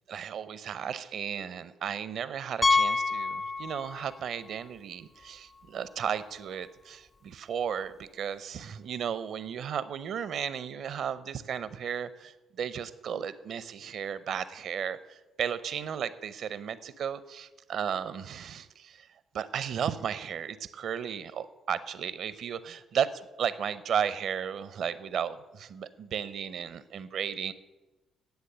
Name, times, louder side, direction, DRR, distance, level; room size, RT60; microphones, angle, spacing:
voice 1, 0.1-15.0 15.4-19.0 19.3-23.1 23.4-27.5, right 8 dB, 65° right, 15 dB, 0.7 m, -34 dB
Piano, 2.6-4.2 4.5-4.6 5.2-5.3 5.6-5.7 7.7-7.8, left 3 dB, 35° left, 0.6 m, -27 dB
10.5 x 8.0 x 6.8 m, 1.1 s
hypercardioid pair, 45°, 0 cm